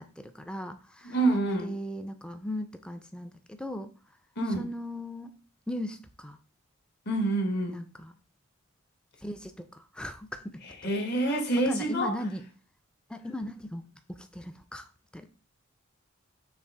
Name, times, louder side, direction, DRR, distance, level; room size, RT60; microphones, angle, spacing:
voice 1, 0.0-3.9 4.5-5.3 5.7-6.4 7.7-8.1 9.2-10.9 11.3-12.4 13.1-15.3, left 1 dB, 5° left, 0.3 m, -38 dB
voice 2, 1.0-1.7 4.4-4.7 7.1-7.8 10.8-12.1, right 2 dB, 50° left, 1.1 m, -27 dB
5.6 x 2.4 x 3.5 m
head